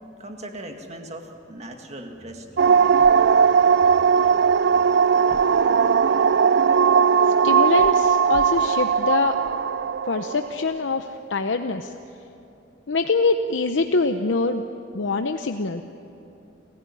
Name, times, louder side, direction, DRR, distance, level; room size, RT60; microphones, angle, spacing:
voice 1, 0.2-4.1, right 1 dB, 35° right, 4 dB, 2.0 m, -40 dB
sound 1, 2.2-5.9, equal, 80° right, 4.1 m, -52 dB
sound 2, 2.6-10.7, right 6 dB, 65° right, 0.4 m, -18 dB
voice 2, 7.4-9.4 10.1-11.9 12.9-14.6 14.9-15.8, left 3 dB, 75° left, 7 dB, 0.8 m, -24 dB
28.5 x 15.0 x 9.8 m, 2.8 s
head